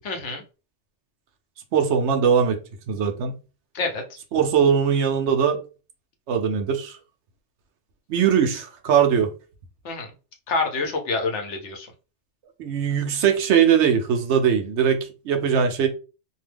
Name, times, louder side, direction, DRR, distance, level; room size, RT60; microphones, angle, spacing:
voice 1, 0.0-0.4 3.7-4.0 9.8-10.1 10.5-11.9, left 3 dB, 75° left, 1.1 m, -27 dB
voice 2, 1.7-2.6 2.9-3.3 4.3-5.6 6.3-7.0 8.1-9.3 12.6-15.9, right 7 dB, 75° right, 0.9 m, -20 dB
2.7 x 2.2 x 3.3 m
omnidirectional pair, 1.2 m